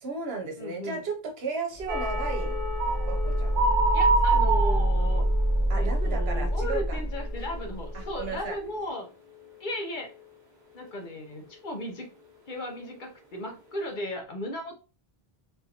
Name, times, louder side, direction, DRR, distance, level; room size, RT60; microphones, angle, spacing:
voice 1, 0.0-2.6 3.1-3.6 5.7-7.0 7.9-8.6, right 4 dB, 75° right, 3 dB, 1.0 m, -34 dB
voice 2, 0.6-1.0 3.9-5.2 5.7-9.1 9.6-10.1 10.7-12.1 12.5-14.7, left 1 dB, 55° left, 3 dB, 0.9 m, -36 dB
sound 1, 1.7-8.4, right 1 dB, 30° left, 1.0 m, -27 dB
sound 2, 1.9-7.7 7.9-8.3 8.7-8.9, right 3 dB, 50° right, 1.1 m, -29 dB
3.8 x 2.6 x 2.8 m, 0.34 s
omnidirectional pair, 1.0 m